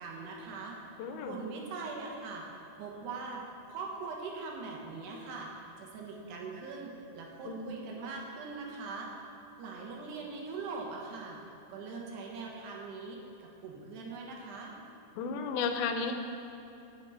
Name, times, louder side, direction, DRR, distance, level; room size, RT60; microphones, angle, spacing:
voice 1, 0.0-2.5 2.8-3.4 3.7-9.1 9.6-11.4 11.7-14.7, right 4 dB, 70° right, -1 dB, 3.2 m, -42 dB
voice 2, 1.0-1.4 7.5-7.7 15.2-16.1, left 5 dB, 80° left, 6 dB, 3.0 m, -33 dB
9.1 x 6.9 x 8.8 m, 2.9 s
omnidirectional pair, 5.2 m